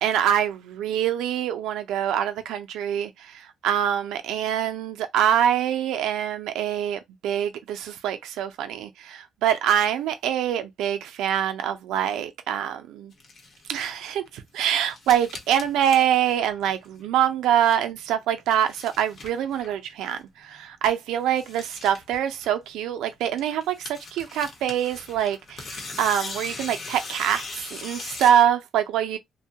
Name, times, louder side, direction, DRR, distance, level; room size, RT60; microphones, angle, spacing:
voice 1, 0.0-13.1 13.7-29.2, right 10 dB, 90° right, 0.5 m, -25 dB
sound 1, 13.1-13.8 14.3-17.1 17.3-18.0 18.4-19.9 20.2-20.3 20.6-20.7 20.8-20.9 21.2-23.0 23.4-28.5, left 3 dB, 50° left, 0.9 m, -40 dB
2.7 x 2.2 x 2.7 m
cardioid pair, 90°, 0 cm